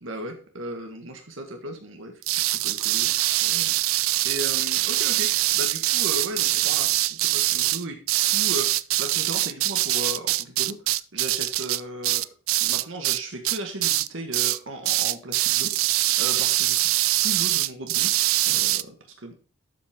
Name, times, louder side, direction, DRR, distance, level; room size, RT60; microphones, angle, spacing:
voice 1, 0.0-3.1 3.4-10.8 11.1-12.3 12.6-18.1 18.4-19.3, right 1 dB, 75° right, 4 dB, 1.6 m, -36 dB
sound 1, 2.2-13.2 13.4-14.1 14.3-14.6 14.8-18.8, right 16 dB, 90° right, 0.4 m, -23 dB
12.0 x 5.4 x 3.7 m, 0.38 s
head